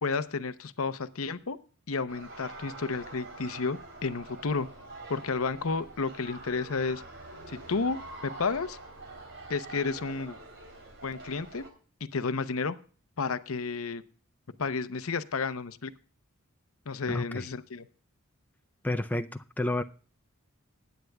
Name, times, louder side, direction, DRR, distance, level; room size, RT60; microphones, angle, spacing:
voice 1, 0.0-1.6 1.9-4.7 5.1-7.0 7.5-8.8 9.5-10.4 11.0-11.6 12.0-12.8 13.2-14.0 14.6-15.9 16.9-17.9, left 4 dB, 80° left, 0.8 m, -31 dB
sound 1, 2.1-11.7, right 2 dB, 60° right, 3.1 m, -45 dB
voice 2, 17.1-17.5 18.8-19.3 19.6-19.8, left 1 dB, 10° left, 0.5 m, -29 dB
21.0 x 9.2 x 2.3 m
head